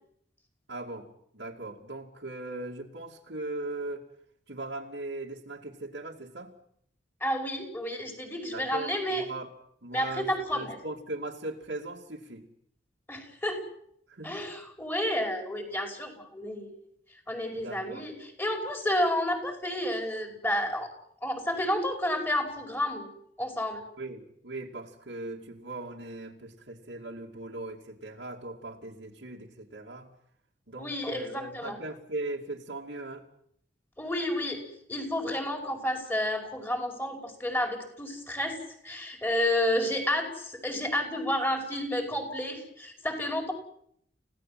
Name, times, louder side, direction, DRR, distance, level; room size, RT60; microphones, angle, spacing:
voice 1, 0.7-1.1 1.3-4.1 4.5-6.5 8.5-9.5 9.8-12.5 14.1-14.4 17.6-18.0 24.0-30.1 30.7-33.2, right 2 dB, 75° right, -2 dB, 2.5 m, -39 dB
voice 2, 7.2-9.2 9.9-10.8 13.1-13.6 14.2-16.7 17.3-20.9 21.2-23.1 23.4-23.8 30.8-31.8 34.0-34.6 34.9-38.6 38.8-43.5, left 1 dB, 10° left, 3 dB, 5.4 m, -30 dB
29.5 x 17.0 x 7.7 m, 0.70 s
head